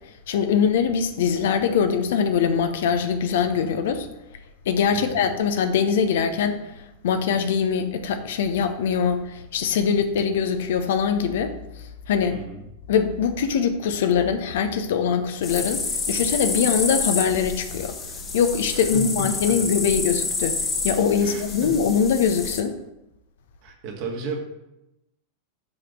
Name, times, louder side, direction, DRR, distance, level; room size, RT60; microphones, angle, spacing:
voice 1, 0.3-4.1 4.7-11.5 12.1-12.4 12.9-18.0 18.3-20.6 20.8-22.8, left 6 dB, 55° left, 8 dB, 0.8 m, -22 dB
voice 2, 4.9-5.3 12.3-12.6 18.7-19.7 21.2-21.8 23.6-24.4, right 3 dB, 45° right, 0 dB, 1.9 m, -34 dB
sound 1, 15.4-22.6, left 4 dB, 25° left, 1.3 m, -28 dB
7.2 x 5.1 x 6.2 m, 0.90 s
figure-of-eight pair, 90°, 0 cm